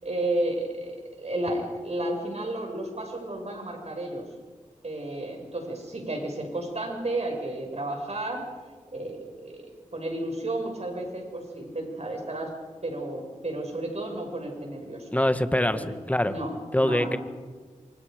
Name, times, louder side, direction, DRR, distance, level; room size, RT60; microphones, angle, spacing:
voice 1, 0.0-4.2 4.8-8.4 8.9-9.6 9.9-12.5 12.8-15.1 15.7-15.9 16.2-17.2, right 1 dB, 55° right, 2 dB, 6.6 m, -32 dB
voice 2, 15.1-16.3 16.7-17.2, left 1 dB, 10° left, 10 dB, 1.7 m, -24 dB
28.0 x 25.0 x 5.3 m, 1.4 s
cardioid pair, 40°, 13 cm